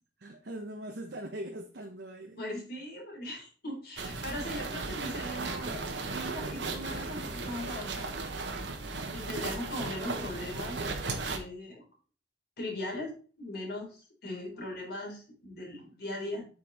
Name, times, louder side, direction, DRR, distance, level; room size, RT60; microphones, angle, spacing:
voice 1, 0.2-2.4 14.2-14.5, right 1 dB, 65° right, 1.0 m, -41 dB
voice 2, 2.3-8.2 9.1-11.8 12.6-16.5, left 1 dB, 60° left, 3.5 m, -39 dB
sound 1, 4.0-11.4, right 3 dB, 80° right, 1.3 m, -36 dB
8.0 x 5.3 x 4.0 m
head